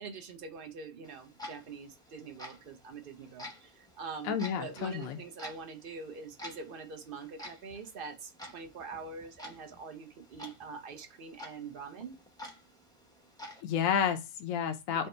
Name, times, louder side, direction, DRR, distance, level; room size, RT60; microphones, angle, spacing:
voice 1, 0.0-12.2 14.9-15.1, right 5 dB, 55° right, 0.6 m, -44 dB
Clock, 1.0-13.6, left 1 dB, 5° left, 0.5 m, -50 dB
voice 2, 4.2-5.2 13.6-15.1, left 8 dB, 70° left, 1.0 m, -31 dB
5.0 x 2.1 x 4.1 m
omnidirectional pair, 1.5 m